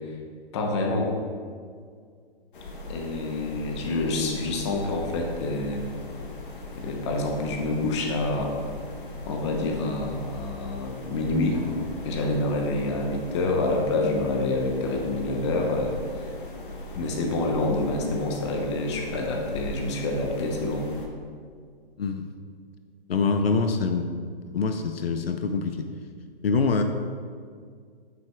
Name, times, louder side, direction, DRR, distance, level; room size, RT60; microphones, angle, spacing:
voice 1, 0.5-1.1 2.9-5.8 6.8-8.5 9.3-11.6 12.0-16.3 16.9-20.8, left 2 dB, 30° left, 1 dB, 0.8 m, -27 dB
sound 1, 2.5-21.1, left 1 dB, 55° left, 1.2 m, -39 dB
voice 2, 23.1-24.1 24.5-25.9 26.4-26.8, left 4 dB, 75° left, 7 dB, 0.6 m, -24 dB
8.9 x 5.9 x 2.3 m, 2.1 s
hypercardioid pair, 150°, 30 cm